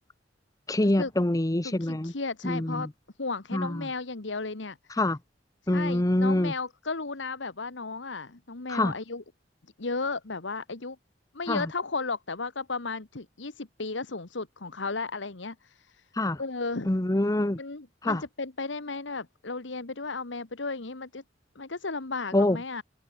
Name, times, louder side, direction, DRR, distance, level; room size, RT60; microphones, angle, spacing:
voice 1, 0.7-2.1 2.4-2.9 3.5-3.9 5.0-5.2 5.7-6.5 8.7-8.9 11.5-11.7 16.2-16.4 16.9-17.6 18.0-18.2 22.3-22.6, left 1 dB, 20° left, 0.8 m, -25 dB
voice 2, 1.6-2.9 3.2-4.8 5.7-9.2 9.8-11.0 11.3-16.1 16.4-16.9 17.6-21.2 21.5-22.8, left 3 dB, 90° left, 1.5 m, -34 dB
head